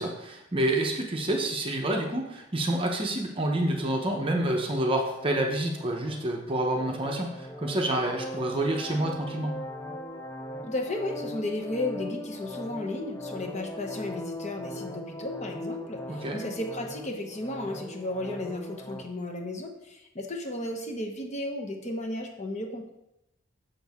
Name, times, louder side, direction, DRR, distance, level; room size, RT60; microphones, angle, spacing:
voice 1, 0.0-9.6 16.1-16.4, right 1 dB, 25° right, 1 dB, 0.7 m, -28 dB
sound 1, 5.0-19.0, left 1 dB, 10° left, 0.5 m, -40 dB
voice 2, 10.6-22.9, left 1 dB, 30° left, 3 dB, 0.9 m, -34 dB
7.1 x 6.1 x 3.5 m, 0.86 s
head